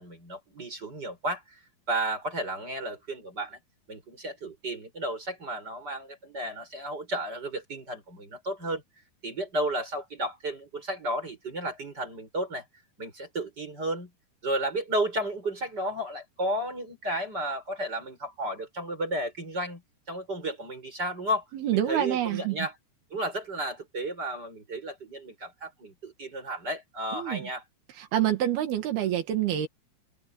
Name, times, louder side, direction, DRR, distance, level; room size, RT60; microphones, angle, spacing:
voice 1, 0.0-1.6 1.9-3.6 3.9-8.8 9.2-12.6 13.0-14.1 14.4-19.8 20.1-21.4 21.7-22.7 23.1-27.6, right 1 dB, 25° right, 6.5 m, -33 dB
voice 2, 21.5-22.6 27.1-27.5 28.0-29.7, right 11 dB, 80° right, 3.7 m, -27 dB
open air
omnidirectional pair, 4.4 m